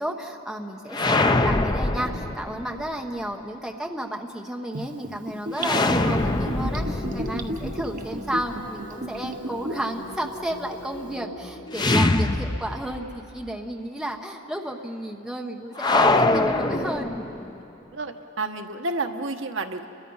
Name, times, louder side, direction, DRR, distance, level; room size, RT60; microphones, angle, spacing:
voice 1, 0.0-17.1, right 1 dB, ahead, 1 dB, 1.0 m, -32 dB
sound 1, 0.9-2.9 5.6-8.6 11.7-13.1 13.4-13.5 15.8-17.5, left 2 dB, 20° left, 0.6 m, -23 dB
Gurgling / Bathtub (filling or washing), 4.7-9.9 10.2-10.3, right 1 dB, 40° right, 0.7 m, -33 dB
sound 2, 6.0-13.4, left 1 dB, 70° left, 2.5 m, -41 dB
voice 2, 17.9-19.9, right 3 dB, 65° right, 6 dB, 1.1 m, -30 dB
29.5 x 22.0 x 5.6 m, 3.0 s
head